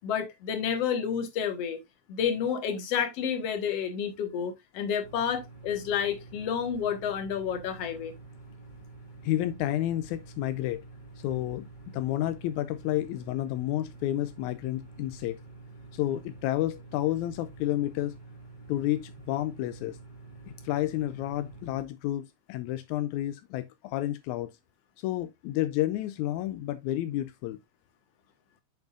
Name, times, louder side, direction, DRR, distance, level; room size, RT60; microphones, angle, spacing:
voice 1, 0.0-1.8 2.1-8.1, left 7 dB, 60° left, 2.4 m, -30 dB
sound 1, 5.0-21.8, right 3 dB, 20° left, 1.9 m, -48 dB
voice 2, 9.2-10.8 11.2-11.7 11.9-15.4 15.9-18.2 18.7-20.0 20.6-24.5 25.0-27.6, left 14 dB, 85° left, 2.0 m, -30 dB
7.9 x 7.1 x 2.5 m
omnidirectional pair, 3.3 m